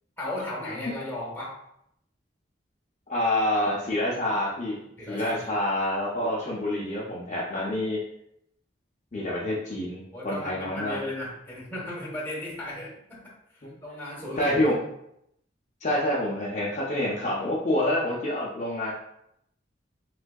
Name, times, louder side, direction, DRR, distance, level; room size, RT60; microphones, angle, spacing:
voice 1, 0.2-1.5 5.0-5.5 10.1-13.2 13.6-14.6, left 1 dB, 10° left, -5 dB, 1.0 m, -35 dB
voice 2, 3.1-4.8 5.1-8.0 9.1-11.0 14.4-14.8 15.8-18.9, left 1 dB, 40° left, -6 dB, 0.5 m, -27 dB
3.5 x 3.2 x 2.2 m, 0.77 s
head